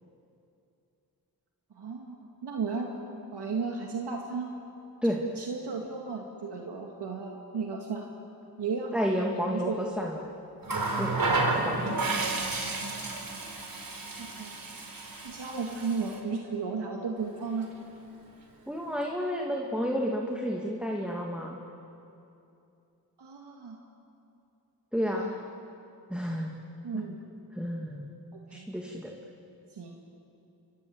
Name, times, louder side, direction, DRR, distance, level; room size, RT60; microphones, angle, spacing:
voice 1, 1.8-2.9 3.3-4.5 5.4-8.0 8.6-8.9 9.3-9.8 14.2-14.5 15.2-17.7 23.2-23.8 25.1-25.4 26.8-27.2 28.3-28.7 29.7-29.9, right 5 dB, 90° right, 0 dB, 2.3 m, -34 dB
voice 2, 8.9-10.3 11.0-11.1 11.5-11.9 18.7-21.6 24.9-25.3 26.1-26.5 26.9-27.0 27.5-28.1 28.5-29.1, equal, 5° right, -1 dB, 2.5 m, -31 dB
Water tap faucet, 10.6-16.2 17.4-17.6, right 3 dB, 60° right, 4.7 m, -31 dB
28.5 x 25.0 x 7.9 m, 2.8 s
wide cardioid pair, 80°, 39 cm